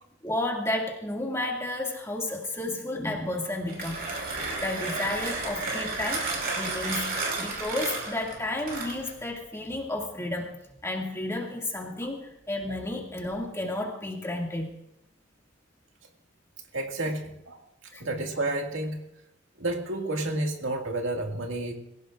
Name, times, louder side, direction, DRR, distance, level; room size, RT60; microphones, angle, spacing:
voice 1, 0.2-4.0 4.6-6.3 6.5-10.5 10.8-14.7 17.9-18.0, left 1 dB, 15° left, -1 dB, 2.3 m, -32 dB
Mechanisms, 3.5-9.2, right 3 dB, 50° right, 5.0 m, -32 dB
voice 2, 16.7-17.6 18.0-19.0 19.6-21.7, right 2 dB, 85° right, 2 dB, 2.1 m, -30 dB
24.5 x 16.5 x 2.5 m, 0.82 s
head